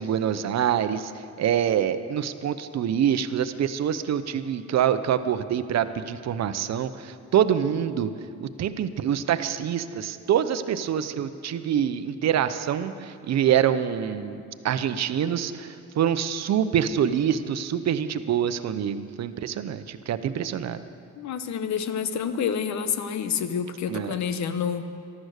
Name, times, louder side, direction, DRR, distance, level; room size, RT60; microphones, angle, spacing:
voice 1, 0.0-8.1 8.4-20.8 23.9-24.2, right 9 dB, 60° right, 12 dB, 0.8 m, -25 dB
voice 2, 21.1-24.9, left 7 dB, 65° left, 11 dB, 1.0 m, -28 dB
14.5 x 12.5 x 6.6 m, 2.4 s
cardioid pair, 90°, 30 cm